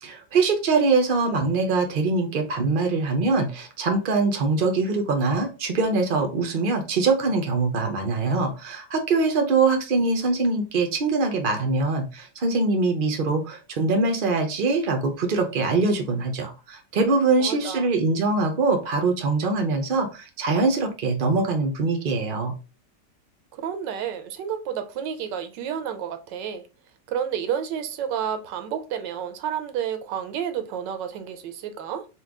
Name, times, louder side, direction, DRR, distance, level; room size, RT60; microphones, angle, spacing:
voice 1, 0.0-22.5, right 3 dB, 70° right, 0.5 m, -23 dB
voice 2, 17.4-17.9 23.5-26.7 27.1-32.1, right 8 dB, 90° right, 1.3 m, -30 dB
4.3 x 2.3 x 3.5 m
omnidirectional pair, 1.9 m